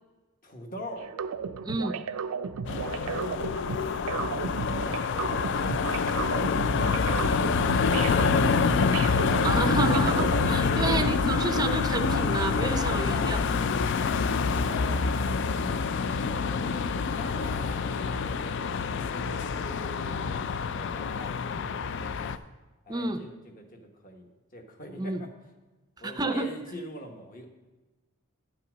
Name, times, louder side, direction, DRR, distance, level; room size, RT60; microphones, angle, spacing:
voice 1, 0.4-1.1 3.0-3.3 4.7-8.5 10.6-11.2 12.5-22.0 22.2-22.3 22.9-25.3 26.0-27.5, equal, 40° left, 3 dB, 1.2 m, -43 dB
sound 1, 1.0-10.6, right 6 dB, 75° right, 0.4 m, -34 dB
voice 2, 1.6-2.0 9.4-13.4 22.9-23.2 25.0-25.2 26.0-26.5, right 3 dB, 20° right, 8 dB, 0.4 m, -30 dB
sound 2, 2.7-22.4, left 5 dB, 55° left, 0.4 m, -26 dB
10.0 x 5.7 x 6.2 m, 1.2 s
head